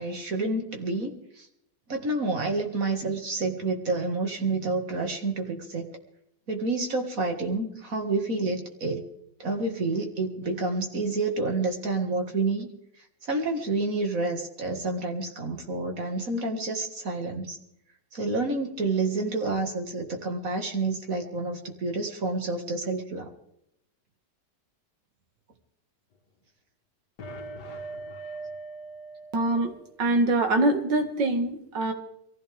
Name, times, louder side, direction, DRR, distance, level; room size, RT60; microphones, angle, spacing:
voice 1, 0.0-1.5 1.9-5.9 6.5-9.0 9.4-12.7 13.2-17.6 18.1-23.3, right 3 dB, 50° right, 3 dB, 2.3 m, -29 dB
sound 1, 27.2-29.9, right 2 dB, 70° left, 1.9 m, -40 dB
voice 2, 29.3-29.7 30.0-31.9, right 2 dB, 85° right, 5 dB, 2.6 m, -24 dB
23.5 x 15.0 x 3.5 m, 0.77 s
omnidirectional pair, 1.9 m